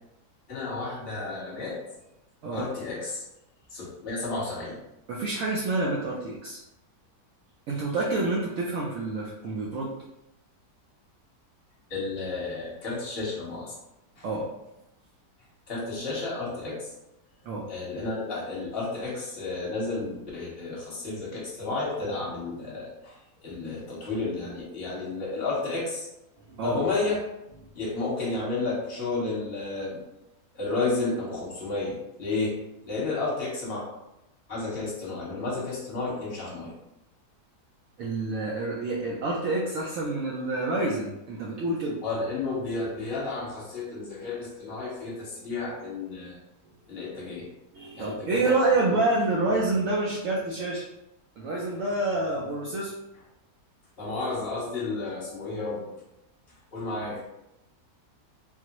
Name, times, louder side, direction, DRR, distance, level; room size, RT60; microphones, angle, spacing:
voice 1, 0.5-1.8 2.5-3.2 3.7-4.8 11.9-13.7 14.2-14.3 15.7-16.9 17.7-23.2 23.4-26.1 26.6-27.2 27.7-30.0 30.5-32.6 32.8-33.8 34.5-36.7 42.0-46.4 46.9-47.5 48.0-48.5 54.0-55.9 56.7-57.2, left 3 dB, 40° left, -5 dB, 1.2 m, -32 dB
voice 2, 5.1-6.6 7.7-9.9 14.2-14.5 17.4-17.7 26.5-26.8 38.0-42.0 47.7-50.8 51.4-53.0, right 2 dB, 75° right, -4 dB, 0.7 m, -28 dB
3.7 x 2.0 x 2.9 m, 0.90 s
omnidirectional pair, 1.8 m